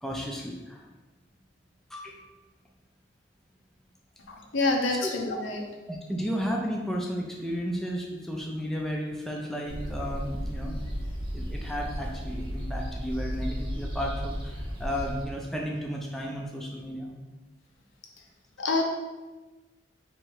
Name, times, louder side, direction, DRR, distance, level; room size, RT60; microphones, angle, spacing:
voice 1, 0.0-0.8 1.9-2.2 5.0-5.1 5.9-10.8 11.3-17.1, equal, ahead, -1 dB, 0.4 m, -33 dB
voice 2, 4.3-5.6 18.6-18.8, left 3 dB, 80° left, 1 dB, 0.7 m, -27 dB
sound 1, 9.7-15.3, equal, 25° right, 0.8 m, -34 dB
3.5 x 3.1 x 4.7 m, 1.2 s
head